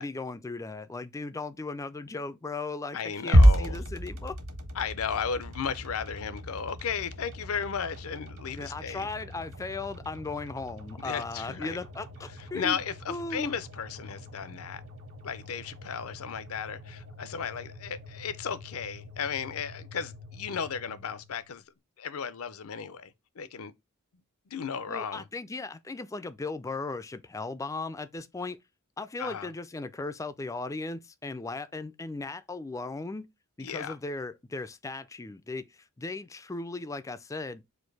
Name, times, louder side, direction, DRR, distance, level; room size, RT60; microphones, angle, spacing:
voice 1, 0.0-4.4 8.5-12.8 13.1-13.5 24.9-28.6 29.0-33.3 33.6-37.6, left 3 dB, 15° left, 0.3 m, -37 dB
voice 2, 2.9-3.8 4.8-9.1 11.0-11.8 12.5-14.8 15.2-21.6 22.0-23.7 24.5-25.2 29.2-29.5 33.6-34.0, left 7 dB, 70° left, 0.5 m, -35 dB
sound 1, 3.3-21.6, equal, 65° right, 1.4 m, -31 dB
4.4 x 2.6 x 4.6 m
head